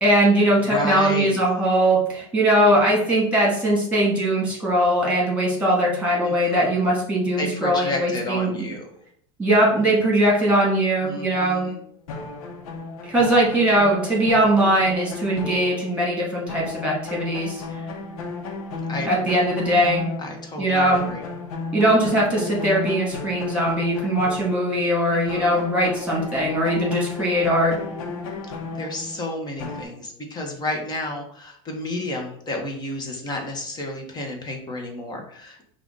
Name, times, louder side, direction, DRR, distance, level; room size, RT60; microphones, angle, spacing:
voice 1, 0.0-8.7 9.4-11.7 13.0-17.6 19.1-20.1 20.6-21.1 21.7-27.7, right 1 dB, 10° right, -3 dB, 1.9 m, -20 dB
voice 2, 0.5-1.4 6.2-6.8 7.4-8.9 11.0-11.8 18.9-19.4 20.2-21.2 25.1-25.6 28.7-35.6, left 1 dB, 25° left, 2 dB, 1.1 m, -31 dB
sound 1, 12.1-16.2 16.5-20.6 20.9-25.0 25.3-29.8, left 3 dB, 80° left, 0.9 m, -34 dB
5.5 x 2.5 x 3.9 m, 0.65 s
supercardioid pair, 125°, 18 cm